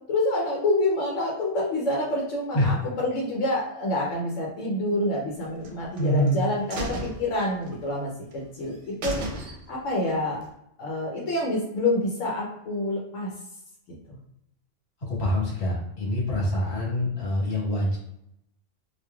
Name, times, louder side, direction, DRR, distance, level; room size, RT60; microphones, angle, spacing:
voice 1, 0.1-9.1 9.4-10.4 10.8-13.3 14.1-14.2, left 1 dB, 90° left, -3 dB, 1.0 m, -27 dB
sound 1, 5.6-6.3 6.7-8.0 8.3-8.4 8.7-8.8 9.0-9.9 10.3-10.4, right 1 dB, 75° right, 0.9 m, -34 dB
voice 2, 6.0-6.4 15.1-18.0, left 1 dB, 55° left, -5 dB, 1.6 m, -25 dB
3.0 x 2.6 x 2.3 m, 0.78 s
omnidirectional pair, 1.3 m